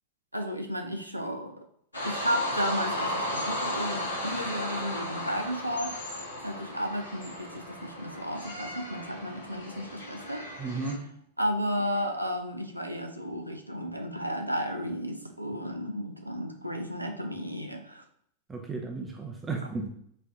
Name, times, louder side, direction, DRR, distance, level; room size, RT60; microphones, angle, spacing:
voice 1, 0.3-1.7 2.0-5.9 6.4-10.4 11.4-18.0, equal, 85° right, 4 dB, 0.5 m, -33 dB
sound 1, 1.9-10.9, left 1 dB, 80° left, 1.0 m, -35 dB
voice 2, 10.6-11.0 18.5-19.9, right 3 dB, 15° right, 1 dB, 0.5 m, -34 dB
4.1 x 2.7 x 3.5 m, 0.68 s
figure-of-eight pair, 90°, 0 cm